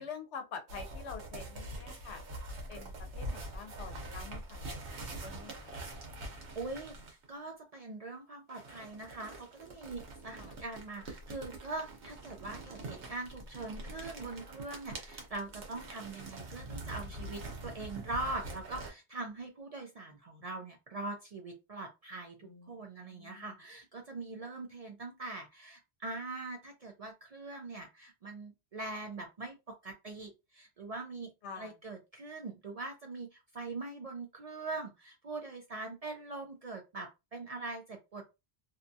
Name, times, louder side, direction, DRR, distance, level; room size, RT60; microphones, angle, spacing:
voice 1, 0.0-2.2 2.7-4.7 5.0-5.7 10.4-10.5 22.4-23.6 31.4-31.7, left 5 dB, 80° left, 0.9 m, -47 dB
sound 1, 0.7-7.3 8.5-18.9, right 1 dB, 90° right, 1.1 m, -44 dB
voice 2, 6.6-38.3, right 3 dB, 50° right, 0.4 m, -42 dB
2.6 x 2.3 x 2.6 m
omnidirectional pair, 1.1 m